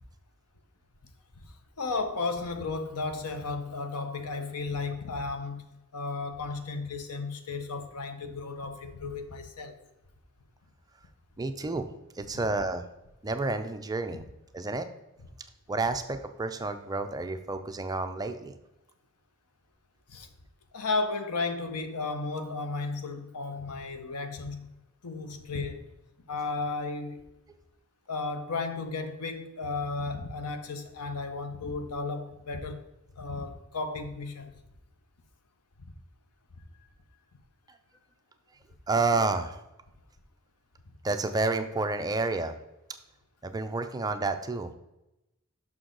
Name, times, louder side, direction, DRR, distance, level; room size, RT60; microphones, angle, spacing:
voice 1, 1.8-5.6 5.9-9.8 12.3-12.4 20.1-20.3 20.7-24.8 25.0-25.9 26.3-27.3 28.1-32.8 33.2-34.5, left 3 dB, 85° left, 0.8 m, -34 dB
voice 2, 11.4-11.9 12.2-12.8 13.2-14.2 14.5-14.9 15.7-18.5 38.9-39.6 41.0-42.6 43.4-44.7, right 3 dB, 15° right, 0.4 m, -30 dB
6.3 x 6.0 x 3.8 m
head